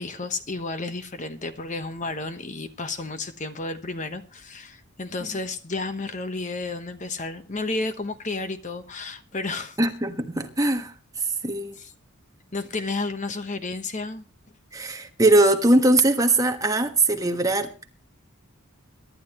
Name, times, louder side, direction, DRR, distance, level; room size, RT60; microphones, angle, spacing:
voice 1, 0.0-9.8 11.7-11.9 12.5-14.2 14.7-15.0, left 3 dB, 35° left, 1.1 m, -32 dB
voice 2, 9.8-10.9 11.4-11.8 14.7-17.7, right 2 dB, 15° right, 1.4 m, -21 dB
23.0 x 12.0 x 3.0 m
head